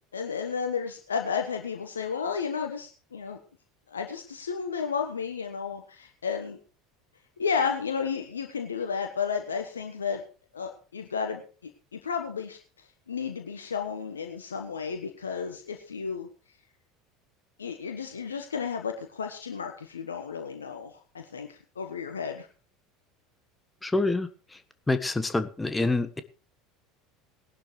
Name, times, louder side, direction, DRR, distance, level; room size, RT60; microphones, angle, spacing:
voice 1, 0.1-3.4 3.9-6.6 7.4-10.2 10.5-11.4 11.9-12.6 13.1-16.3 17.6-22.5, left 6 dB, 80° left, 5 dB, 1.3 m, -32 dB
voice 2, 23.8-24.3 24.9-26.2, left 2 dB, 10° left, 10 dB, 1.3 m, -26 dB
18.5 x 11.5 x 3.2 m, 0.37 s
figure-of-eight pair, 70°, 0 cm